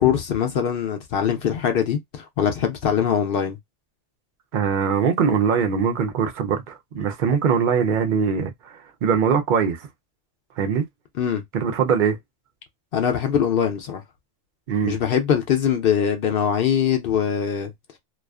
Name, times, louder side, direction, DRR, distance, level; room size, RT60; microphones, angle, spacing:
voice 1, 0.0-3.6 11.2-11.4 12.9-14.0 14.8-17.7, left 8 dB, 60° left, 0.6 m, -22 dB
voice 2, 4.5-9.9 10.6-10.8 11.5-12.2 14.7-15.0, right 6 dB, 60° right, 0.5 m, -22 dB
2.4 x 2.3 x 2.2 m
omnidirectional pair, 1.3 m